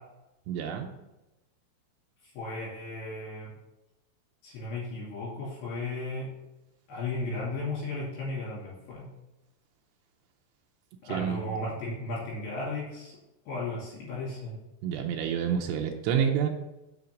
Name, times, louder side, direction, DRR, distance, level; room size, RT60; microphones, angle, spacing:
voice 1, 0.5-0.9 11.1-11.6 14.8-16.5, right 8 dB, 90° right, 2 dB, 2.4 m, -28 dB
voice 2, 2.3-3.5 4.4-6.3 6.9-9.1 11.1-13.1 13.5-14.6, left 2 dB, 60° left, -7 dB, 4.2 m, -35 dB
7.0 x 5.7 x 5.1 m, 0.97 s
omnidirectional pair, 5.6 m